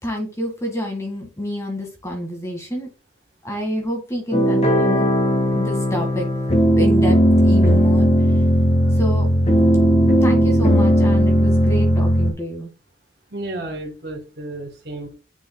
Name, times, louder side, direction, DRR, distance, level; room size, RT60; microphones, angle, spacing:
voice 1, 0.0-2.9 3.4-5.1 5.5-6.3 6.8-8.1 8.9-9.3 10.2-12.7, equal, 15° left, 2 dB, 1.9 m, -28 dB
sound 1, 4.3-12.3, equal, 35° left, 1.6 m, -16 dB
voice 2, 13.3-15.1, right 2 dB, 55° right, 2 dB, 3.1 m, -32 dB
9.6 x 5.5 x 2.3 m, 0.30 s
head